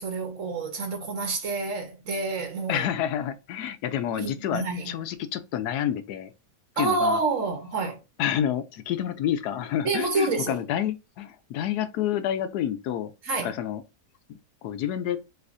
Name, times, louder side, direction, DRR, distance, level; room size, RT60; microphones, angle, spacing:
voice 1, 0.0-2.8 4.1-4.9 6.8-8.0 9.8-10.6 13.2-13.5, right 3 dB, 55° right, 1.3 m, -28 dB
voice 2, 2.7-6.3 6.8-7.2 8.2-13.1 13.4-13.8 14.3-15.2, left 10 dB, 75° left, 1.1 m, -29 dB
6.3 x 2.5 x 2.6 m
omnidirectional pair, 1.7 m